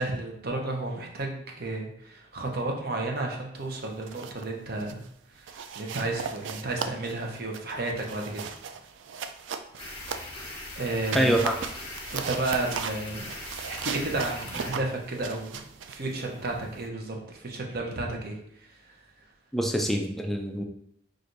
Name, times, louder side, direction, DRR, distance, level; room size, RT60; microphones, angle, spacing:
voice 1, 0.0-5.0 5.3-8.4 10.8-11.3 12.1-13.3 13.7-19.0, right 2 dB, 55° right, 1 dB, 0.8 m, -32 dB
sound 1, 3.8-4.5 4.8-5.1 5.5-10.6 11.0-16.9, right 6 dB, 85° right, 0.4 m, -37 dB
sound 2, 9.8-14.7, left 2 dB, 30° left, 1.1 m, -40 dB
voice 2, 11.1-11.6 19.5-20.6, right 1 dB, ahead, 2 dB, 0.4 m, -25 dB
6.0 x 2.5 x 2.6 m, 0.73 s
head